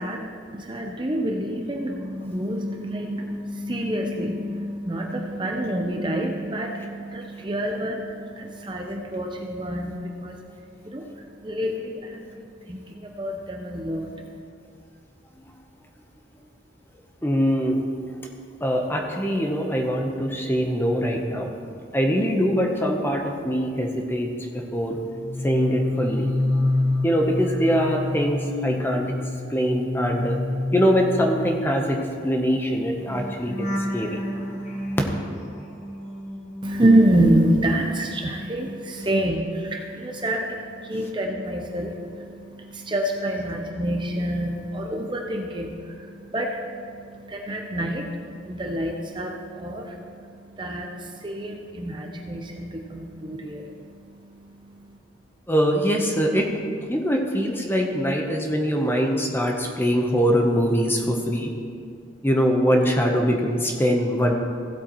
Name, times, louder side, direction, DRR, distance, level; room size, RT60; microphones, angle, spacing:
voice 1, 0.0-14.4 36.6-55.0, right 1 dB, 25° right, 2 dB, 0.7 m, -27 dB
voice 2, 17.2-17.8 18.6-21.5 21.9-24.3 24.7-25.0 25.4-26.3 27.0-29.1 29.5-30.4 30.7-34.2 55.5-61.5 62.2-64.3, equal, 10° left, 1 dB, 0.9 m, -23 dB
sound 1, 25.1-37.4 37.7-39.8 40.1-40.4, left 1 dB, 35° left, 1.2 m, -30 dB
16.0 x 8.0 x 3.1 m, 2.3 s
head